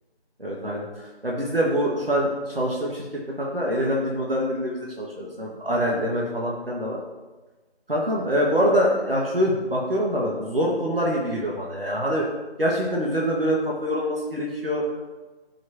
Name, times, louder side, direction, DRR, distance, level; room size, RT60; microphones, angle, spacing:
voice 1, 0.4-3.1 3.4-7.0 7.9-12.3 12.6-14.8, equal, 60° right, -3 dB, 1.8 m, -25 dB
15.0 x 6.4 x 2.9 m, 1.2 s
figure-of-eight pair, 175°, 33 cm